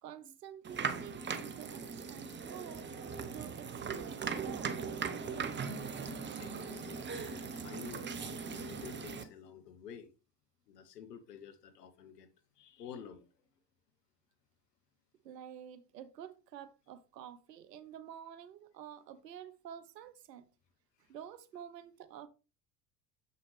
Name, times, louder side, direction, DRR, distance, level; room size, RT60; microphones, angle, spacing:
voice 1, 0.0-2.9 3.3-4.8 15.2-20.5 21.0-22.3, right 9 dB, 80° right, 0.9 m, -49 dB
sound 1, 0.6-9.2, right 5 dB, 25° right, 0.9 m, -39 dB
voice 2, 6.4-10.1 10.7-13.5 21.0-21.1, left 8 dB, 75° left, 1.1 m, -51 dB
6.8 x 6.5 x 3.2 m
hypercardioid pair, 70°, 48 cm